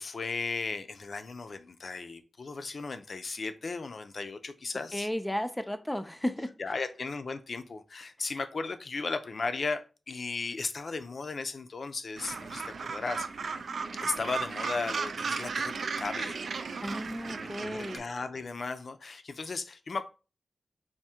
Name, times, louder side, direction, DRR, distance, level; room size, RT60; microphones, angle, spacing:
voice 1, 0.0-5.1 6.6-13.3 14.0-16.4 17.3-20.0, left 4 dB, 60° left, 0.5 m, -36 dB
voice 2, 4.9-6.5 16.8-18.0, left 1 dB, 10° left, 0.5 m, -34 dB
Gull seagull, 12.2-18.0, right 5 dB, 85° right, 0.3 m, -35 dB
3.6 x 2.6 x 4.3 m
wide cardioid pair, 80°, 0 cm